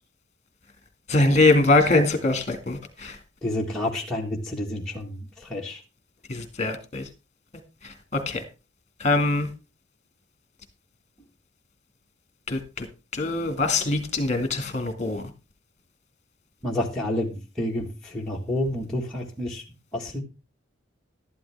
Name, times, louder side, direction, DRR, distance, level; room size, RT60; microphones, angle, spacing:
voice 1, 1.1-3.2 6.3-7.0 8.1-8.4 9.0-9.5 12.5-12.9 13.1-15.2, left 2 dB, 35° left, 2.1 m, -22 dB
voice 2, 3.4-5.8 16.6-19.6 19.9-20.2, left 1 dB, 5° left, 1.6 m, -29 dB
12.5 x 11.5 x 3.5 m
head